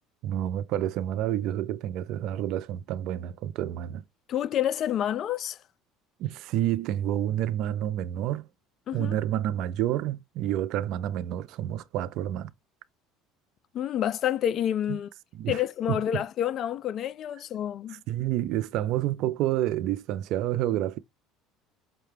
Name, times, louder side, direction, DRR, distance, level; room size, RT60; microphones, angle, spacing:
voice 1, 0.2-4.0 6.2-8.5 8.9-12.5 14.9-15.0 15.3-15.6 15.9-16.2 17.9-21.0, right 12 dB, 65° right, 0.4 m, -29 dB
voice 2, 4.3-5.6 8.9-9.1 13.7-15.1 15.5-18.0, left 10 dB, 45° left, 0.4 m, -28 dB
5.7 x 2.2 x 3.3 m
supercardioid pair, 115°, 0 cm